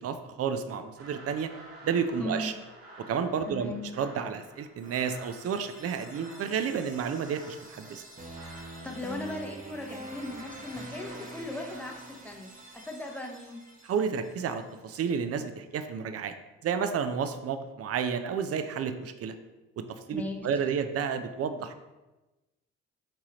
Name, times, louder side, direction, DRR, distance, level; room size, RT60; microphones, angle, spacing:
voice 1, 0.0-1.5 1.8-2.5 3.0-8.0 13.8-16.3 16.6-19.4 19.8-21.8, right 6 dB, 40° right, 9 dB, 0.5 m, -31 dB
sound 1, 1.0-12.1, right 1 dB, 85° right, 1.1 m, -51 dB
voice 2, 2.2-2.5 3.4-3.9 8.8-13.6 20.1-20.6, left 1 dB, 5° left, 1 dB, 0.8 m, -38 dB
sound 2, 4.8-14.7, right 1 dB, 20° right, 1.0 m, -46 dB
4.7 x 2.9 x 2.9 m, 1.1 s
hypercardioid pair, 45°, 37 cm